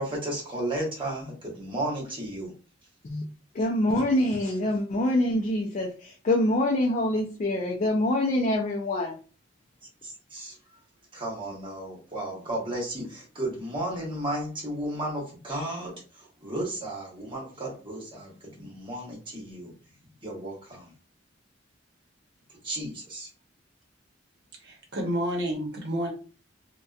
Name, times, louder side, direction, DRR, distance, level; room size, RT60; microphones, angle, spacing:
voice 1, 0.0-2.5 10.0-10.6 11.1-19.7 20.2-20.9 22.6-23.3, right 1 dB, 25° right, 1.1 m, -34 dB
voice 2, 3.5-9.2, left 1 dB, 40° left, 0.4 m, -25 dB
voice 3, 24.6-26.1, equal, 60° right, 0.8 m, -30 dB
2.7 x 2.2 x 2.3 m
head